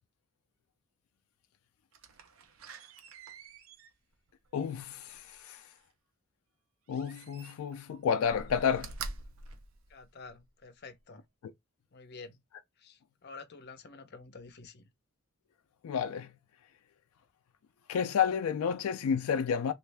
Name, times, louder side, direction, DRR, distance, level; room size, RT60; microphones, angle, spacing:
Slam, 1.9-5.8 6.9-7.8 8.2-10.5 11.0-11.1, right 4 dB, 70° right, 0.6 m, -47 dB
voice 1, 4.5-5.6 6.9-9.0 15.8-16.3 17.9-19.7, left 7 dB, 90° left, 0.3 m, -30 dB
voice 2, 9.9-11.2 11.9-12.4 12.8-14.9, left 4 dB, 50° left, 0.7 m, -49 dB
3.1 x 2.5 x 3.3 m
head